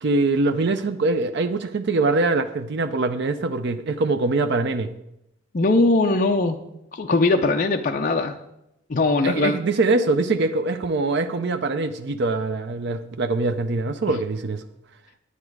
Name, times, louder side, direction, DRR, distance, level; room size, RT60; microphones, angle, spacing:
voice 1, 0.0-4.9 9.2-14.6, right 3 dB, 50° right, 0.5 m, -23 dB
voice 2, 5.5-6.6 6.9-8.4 8.9-9.6, left 2 dB, 40° left, 0.5 m, -20 dB
9.9 x 9.5 x 4.7 m
head